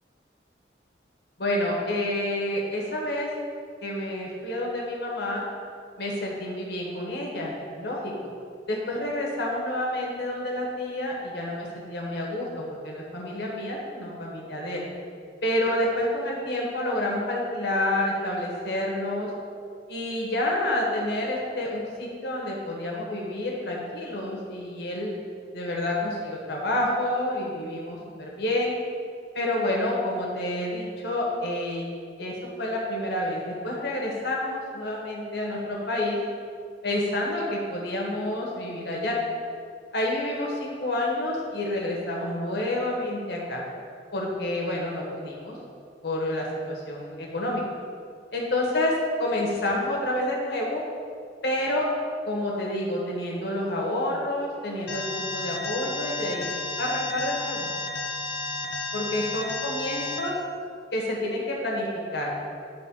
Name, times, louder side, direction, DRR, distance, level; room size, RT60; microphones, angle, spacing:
voice 1, 1.4-3.3 3.8-5.4 6.0-8.3 8.7-14.8 15.4-19.3 19.9-25.2 25.5-28.7 29.3-31.9 32.2-36.2 36.8-39.2 39.9-43.6 44.1-45.6 46.0-47.6 48.3-50.8 51.4-51.9 52.2-56.5 56.8-57.7 58.9-60.3 60.9-62.4, left 1 dB, 65° left, -2 dB, 1.7 m, -29 dB
Alarm, 54.9-60.2, left 3 dB, 85° left, 0.9 m, -32 dB
9.5 x 3.8 x 5.6 m, 2.2 s
head